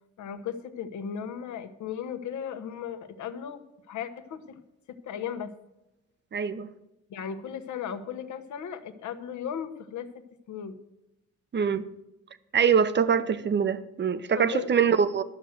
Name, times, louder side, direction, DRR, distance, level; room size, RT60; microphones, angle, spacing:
voice 1, 0.2-4.6 5.0-5.5 7.1-10.1 10.5-10.7 14.3-14.7, left 8 dB, 70° left, 1.2 m, -36 dB
voice 2, 6.3-6.7 11.5-11.9 12.5-15.2, right 7 dB, 35° right, 0.8 m, -24 dB
12.0 x 6.5 x 7.9 m
cardioid pair, 90°, 30 cm